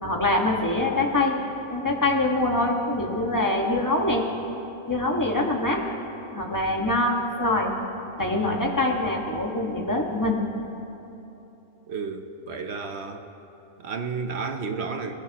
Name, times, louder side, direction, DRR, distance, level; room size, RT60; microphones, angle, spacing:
voice 1, 0.0-1.4 1.7-4.2 4.9-5.8 6.3-7.7 8.2-10.4, left 2 dB, 15° left, -1 dB, 1.7 m, -24 dB
voice 2, 11.9-13.3 13.8-15.1, right 5 dB, 50° right, 5 dB, 1.1 m, -32 dB
29.5 x 15.0 x 3.1 m, 3.0 s
omnidirectional pair, 1.6 m